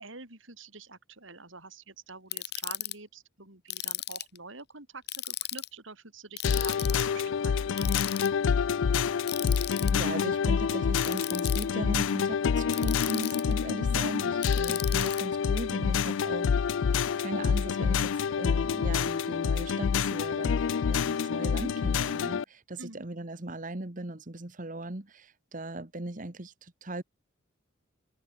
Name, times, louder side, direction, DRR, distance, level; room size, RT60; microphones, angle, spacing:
voice 1, 0.0-8.1 14.7-14.8 22.8-23.0, right 3 dB, 70° right, 6.0 m, -47 dB
Ratchet pawl, 2.3-2.9 3.7-4.4 5.1-5.7 6.4-7.1 7.8-8.3 9.3-9.9 11.0-11.6 12.7-13.5 14.4-15.2, left 15 dB, 55° left, 2.2 m, -35 dB
sound 1, 6.4-22.4, left 6 dB, 70° left, 0.4 m, -27 dB
voice 2, 9.3-27.0, right 2 dB, 40° right, 1.6 m, -39 dB
head